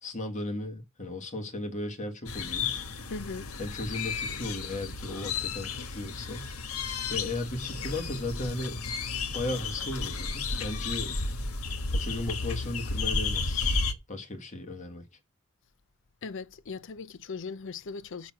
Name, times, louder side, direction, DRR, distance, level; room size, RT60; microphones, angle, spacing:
voice 1, 0.0-2.8 3.6-6.5 7.1-8.8 9.3-11.1 11.9-13.8 14.1-15.0, left 2 dB, 35° left, 1.6 m, -36 dB
sound 1, 2.3-13.9, left 4 dB, 80° left, 1.3 m, -33 dB
voice 2, 3.1-3.5 16.2-18.3, left 4 dB, 60° left, 0.6 m, -39 dB
6.5 x 6.0 x 7.4 m
head